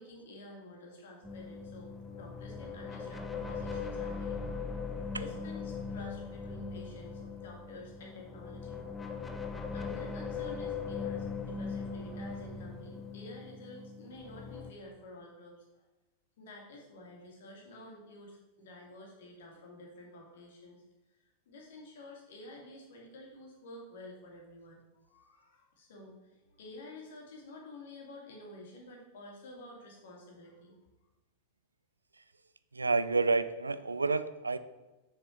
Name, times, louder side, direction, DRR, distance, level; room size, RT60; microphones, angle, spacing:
voice 1, 0.0-4.5 5.1-8.8 9.2-15.8 16.4-20.8 21.5-30.8, left 1 dB, 60° left, -1 dB, 2.3 m, -50 dB
sound 1, 1.2-14.7, left 5 dB, 10° left, 0.7 m, -40 dB
voice 2, 32.7-34.6, right 3 dB, 80° right, 14 dB, 0.4 m, -29 dB
6.8 x 6.5 x 4.5 m, 1.1 s
figure-of-eight pair, 90°, 0 cm